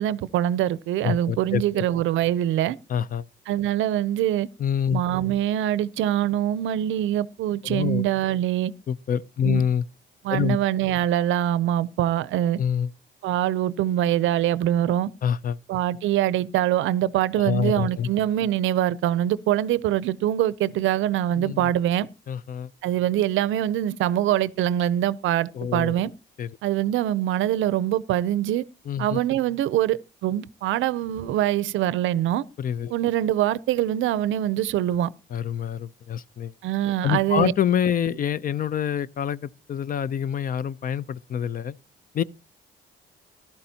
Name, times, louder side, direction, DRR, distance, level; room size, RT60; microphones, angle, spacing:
voice 1, 0.0-2.8 3.5-4.5 4.9-8.7 9.4-9.6 10.2-12.6 13.2-15.1 15.7-22.1 22.8-26.1 26.6-28.7 29.0-32.4 32.9-35.1 36.6-37.5, right 12 dB, 80° right, 0.5 m, -24 dB
voice 2, 1.0-1.8 2.9-3.2 4.6-5.0 7.7-8.0 8.9-9.8 10.3-10.6 12.6-12.9 15.2-15.6 17.5-18.1 21.4-21.7 22.3-22.7 25.6-25.9 26.4-26.5 28.9-29.2 32.6-32.9 35.3-36.5 37.0-41.7 42.1-42.2, left 8 dB, 45° left, 0.5 m, -26 dB
14.5 x 12.0 x 2.8 m
cardioid pair, 90°, 20 cm